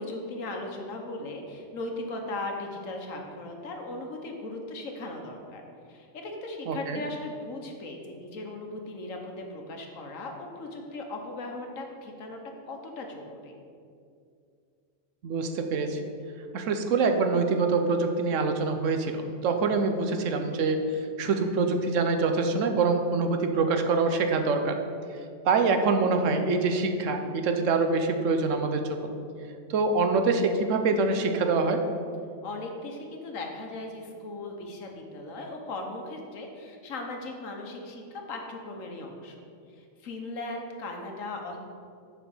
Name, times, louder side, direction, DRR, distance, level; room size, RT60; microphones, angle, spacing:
voice 1, 0.0-5.6 5.9-12.4 12.7-13.5 32.4-39.4 39.7-41.6, left 2 dB, 90° left, 2 dB, 1.5 m, -38 dB
voice 2, 6.7-7.0 15.2-16.0 16.5-20.8 21.2-24.8 25.4-29.1 29.7-31.8, right 4 dB, 75° right, 6 dB, 1.1 m, -25 dB
7.3 x 4.8 x 7.1 m, 2.3 s
omnidirectional pair, 1.3 m